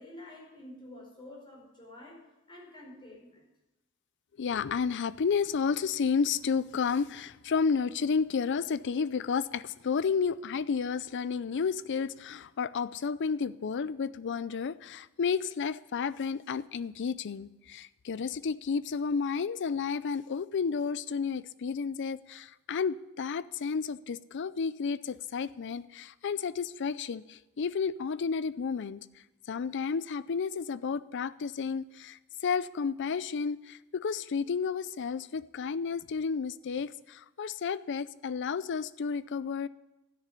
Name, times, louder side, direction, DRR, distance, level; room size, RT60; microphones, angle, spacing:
voice 1, 0.0-2.2 2.5-3.5, left 1 dB, 25° left, -3 dB, 4.7 m, -49 dB
voice 2, 4.4-29.1 29.5-39.7, left 5 dB, 55° left, 17 dB, 0.4 m, -31 dB
13.0 x 6.8 x 10.0 m, 1.0 s
head